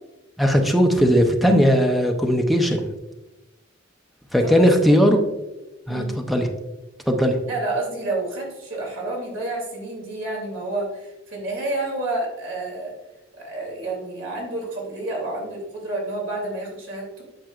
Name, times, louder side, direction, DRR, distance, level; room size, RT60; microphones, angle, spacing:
voice 1, 0.4-2.9 4.3-5.2 5.9-6.5 7.1-7.4, equal, ahead, 3 dB, 0.7 m, -18 dB
voice 2, 4.4-5.0 5.9-6.2 7.5-12.9 13.4-17.2, right 2 dB, 70° right, -2 dB, 2.6 m, -29 dB
8.9 x 6.2 x 2.4 m, 1.0 s
head